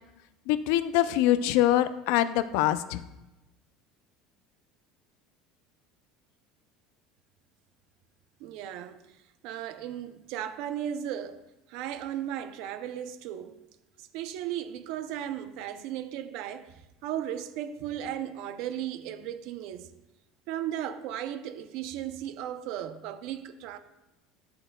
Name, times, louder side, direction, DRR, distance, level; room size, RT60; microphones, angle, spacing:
voice 1, 0.5-3.0, left 13 dB, 75° left, 0.4 m, -24 dB
voice 2, 8.4-9.0 9.4-11.4 11.7-13.6 14.0-19.9 20.5-23.8, right 10 dB, 65° right, 0.5 m, -36 dB
9.9 x 6.5 x 2.2 m
cardioid pair, 140°, 0 cm